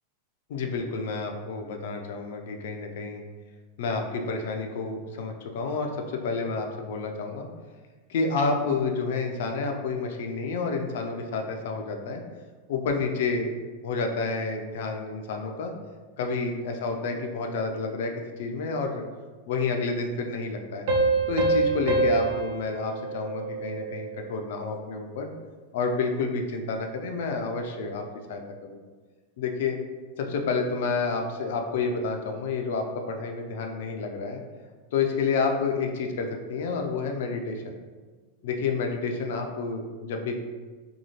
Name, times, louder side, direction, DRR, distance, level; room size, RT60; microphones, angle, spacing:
voice 1, 0.5-3.2 3.8-7.5 8.1-12.2 12.7-13.5 13.8-15.7 16.2-19.0 19.5-20.9 21.3-25.3 25.7-28.0 28.3-28.8 29.4-29.8 30.2-34.4 34.9-37.8 38.4-40.3, left 4 dB, 55° left, 3 dB, 0.3 m, -29 dB
sound 1, 20.9-24.2, right 3 dB, 55° right, 0.4 m, -26 dB
2.7 x 2.3 x 2.9 m, 1.4 s
figure-of-eight pair, 90°, 0 cm